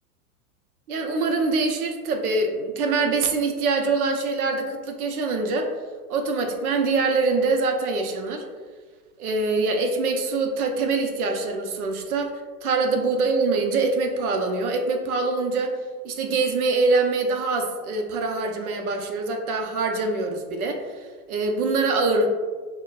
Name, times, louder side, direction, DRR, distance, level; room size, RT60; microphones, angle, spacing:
voice 1, 0.9-5.7 6.1-8.4 9.2-12.3 12.6-15.8 16.0-22.3, right 3 dB, 70° right, 3 dB, 0.7 m, -24 dB
6.1 x 2.2 x 2.3 m, 1.5 s
hypercardioid pair, 110°, 46 cm